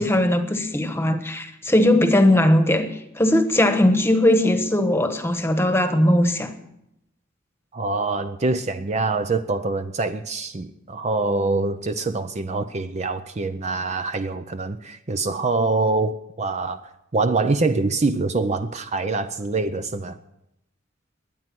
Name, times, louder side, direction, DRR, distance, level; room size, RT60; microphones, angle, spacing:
voice 1, 0.0-6.5, left 1 dB, 10° left, 1.2 m, -19 dB
voice 2, 7.7-16.8 17.1-20.2, right 3 dB, 35° right, 0.5 m, -24 dB
22.0 x 9.2 x 6.0 m
head